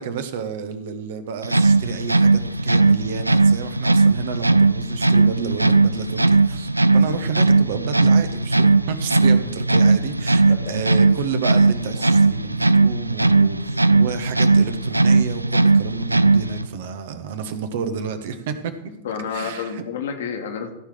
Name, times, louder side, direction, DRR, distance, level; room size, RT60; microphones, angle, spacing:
voice 1, 0.0-18.7 19.3-19.8, right 6 dB, 55° right, 9 dB, 1.1 m, -30 dB
sound 1, 1.4-16.7, right 3 dB, 85° right, 0.3 m, -18 dB
voice 2, 6.9-7.3 9.1-9.5 10.4-10.8 12.0-12.2 19.0-20.7, left 6 dB, 60° left, 4 dB, 1.7 m, -31 dB
14.5 x 5.0 x 7.6 m, 0.87 s
figure-of-eight pair, 90°, 0 cm